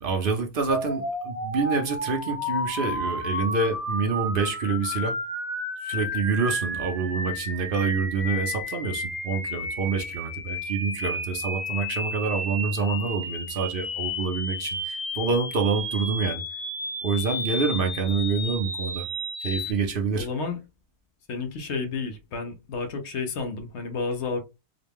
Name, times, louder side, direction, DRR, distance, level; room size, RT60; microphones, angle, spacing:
voice 1, 0.0-5.1 5.8-16.4 17.0-19.1 19.4-20.3, right 4 dB, 55° right, 0.8 m, -27 dB
sound 1, 0.7-19.7, left 1 dB, 35° left, 1.3 m, -32 dB
voice 2, 20.1-20.6 21.3-24.4, left 4 dB, 75° left, 1.1 m, -31 dB
3.9 x 2.2 x 3.4 m
omnidirectional pair, 1.2 m